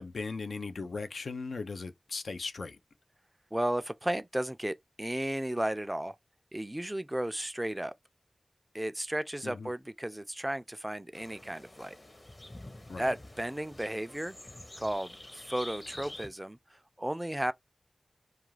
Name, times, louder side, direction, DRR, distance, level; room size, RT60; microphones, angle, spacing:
voice 1, 0.0-2.8 9.4-9.7 12.9-13.1, left 4 dB, 85° left, 0.4 m, -38 dB
voice 2, 3.5-6.1 6.5-7.9 8.7-12.0 13.0-14.4 14.8-15.2 15.5-16.6 17.0-17.5, right 1 dB, 15° right, 0.3 m, -34 dB
sound 1, 11.1-16.3, left 1 dB, 40° left, 0.7 m, -48 dB
2.3 x 2.3 x 3.1 m
cardioid pair, 45°, 0 cm